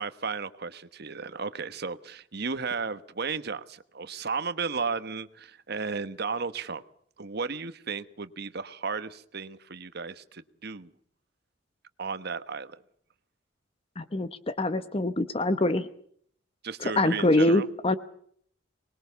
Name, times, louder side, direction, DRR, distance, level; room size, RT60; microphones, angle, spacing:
voice 1, 0.0-6.8 7.2-10.9 12.0-12.8 16.6-17.7, right 5 dB, 60° right, 12 dB, 1.2 m, -34 dB
voice 2, 14.0-15.9 17.0-17.9, left 1 dB, 30° left, 12 dB, 0.9 m, -24 dB
24.5 x 21.0 x 7.0 m, 0.64 s
head